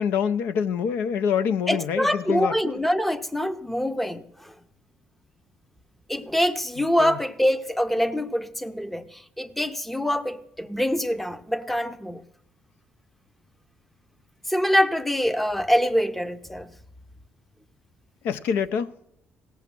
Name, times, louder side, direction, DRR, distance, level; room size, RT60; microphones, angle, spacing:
voice 1, 0.0-2.8 7.0-7.2 18.2-18.9, left 7 dB, 85° left, 0.5 m, -26 dB
voice 2, 1.7-4.2 6.1-9.1 9.4-12.2 14.5-16.7, equal, 5° left, 0.6 m, -24 dB
17.0 x 6.9 x 6.0 m
cardioid pair, 115°, 4 cm